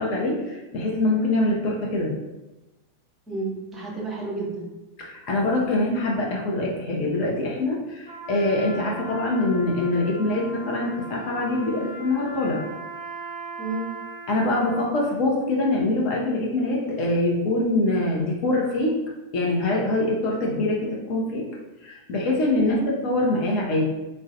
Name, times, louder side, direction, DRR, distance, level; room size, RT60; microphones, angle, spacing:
voice 1, 0.0-2.1 5.0-12.6 14.3-18.9 19.3-21.4 21.8-22.8 23.0-23.8, left 2 dB, 40° left, -2 dB, 0.5 m, -24 dB
voice 2, 3.3-4.7 13.6-13.9 22.6-22.9, right 2 dB, 15° right, -4 dB, 0.7 m, -31 dB
Trumpet, 8.0-15.0, right 2 dB, 60° left, 0.9 m, -38 dB
2.2 x 2.1 x 2.7 m, 1.0 s
figure-of-eight pair, 90°, 0 cm